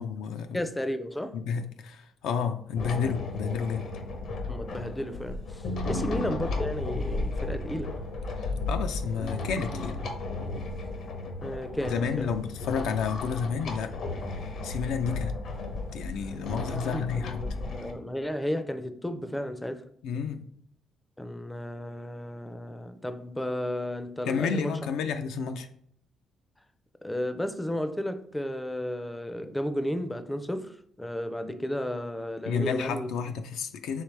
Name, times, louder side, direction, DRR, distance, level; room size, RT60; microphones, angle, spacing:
voice 1, 0.0-0.6 1.3-3.9 5.8-6.2 8.4-10.0 11.8-14.0 14.3-15.4 15.9-17.4 20.0-20.5 24.2-25.7 32.5-34.0, left 6 dB, 85° left, 0.4 m, -31 dB
voice 2, 0.5-1.4 4.5-8.0 11.4-12.4 16.7-19.8 21.2-24.8 27.0-33.1, left 1 dB, 10° left, 0.4 m, -33 dB
sound 1, 2.8-17.9, left 2 dB, 70° left, 0.8 m, -34 dB
4.7 x 3.2 x 3.2 m
cardioid pair, 90°, 0 cm